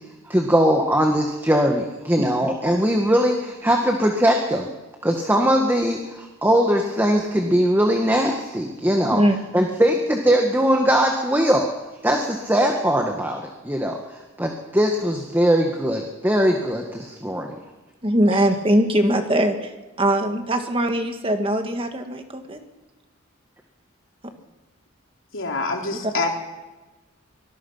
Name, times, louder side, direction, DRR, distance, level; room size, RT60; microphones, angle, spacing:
voice 1, 0.3-4.7 5.0-9.2 9.5-11.7 12.0-14.0 14.4-17.5, equal, 10° right, 2 dB, 1.8 m, -20 dB
voice 2, 18.0-22.6 26.0-26.1, right 1 dB, 25° right, 5 dB, 1.8 m, -21 dB
voice 3, 25.3-26.3, left 3 dB, 70° left, 1 dB, 3.8 m, -25 dB
25.0 x 19.5 x 5.8 m, 1.1 s
head